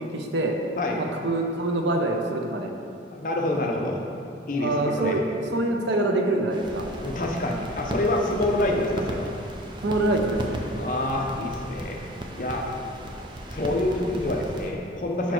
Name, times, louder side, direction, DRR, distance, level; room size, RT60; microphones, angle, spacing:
voice 1, 0.0-0.6 1.0-2.7 4.6-5.2 5.5-6.9 9.8-10.6, right 2 dB, 85° right, 3 dB, 0.6 m, -25 dB
voice 2, 3.1-4.0 4.5-5.2 7.0-9.3 10.8-12.0 12.4-12.6 13.5-15.3, left 1 dB, 45° left, 0 dB, 0.7 m, -27 dB
sound 1, 6.5-14.7, right 1 dB, 25° right, 0.5 m, -36 dB
5.5 x 4.5 x 4.4 m, 2.4 s
head